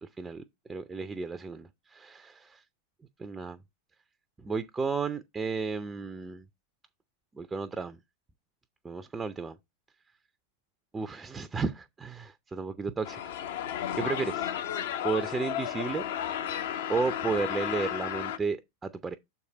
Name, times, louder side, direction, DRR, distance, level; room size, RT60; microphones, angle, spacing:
voice 1, 0.0-0.4 0.7-2.6 3.2-3.6 4.4-6.5 7.3-8.0 8.8-9.6 10.9-13.6 13.9-16.0 16.9-19.2, right 4 dB, 15° right, 0.5 m, -33 dB
sound 1, 13.0-18.4, left 10 dB, 55° left, 0.9 m, -33 dB
7.0 x 4.7 x 4.0 m
figure-of-eight pair, 90°, 0 cm